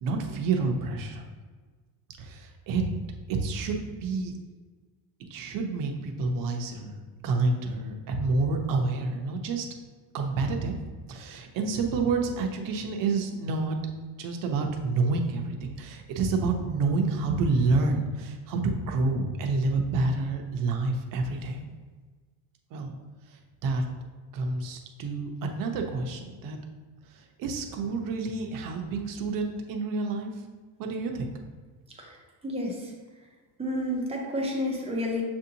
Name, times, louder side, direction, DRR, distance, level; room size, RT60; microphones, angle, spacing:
voice 1, 0.0-1.2 2.2-2.8 3.3-4.3 5.3-7.0 7.2-9.7 10.1-10.8 11.1-13.8 14.2-21.6 22.7-23.0 23.6-23.8 24.3-26.6 27.1-30.3 30.8-31.3, right 3 dB, 55° right, 3 dB, 0.7 m, -28 dB
voice 2, 32.4-32.7 33.6-35.2, left 1 dB, 15° right, -1 dB, 0.6 m, -29 dB
6.8 x 2.6 x 2.8 m, 1.4 s
cardioid pair, 155°, 39 cm